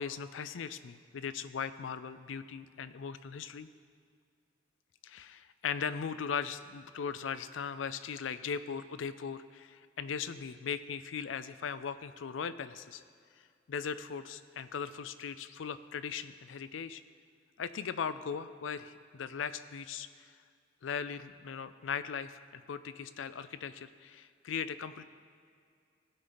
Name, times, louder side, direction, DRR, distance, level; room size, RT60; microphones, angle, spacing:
voice 1, 0.0-3.7 5.0-13.0 13.7-17.0 17.6-20.3 20.8-25.0, left 6 dB, 90° left, 13 dB, 0.4 m, -39 dB
16.5 x 5.5 x 4.0 m, 2.3 s
head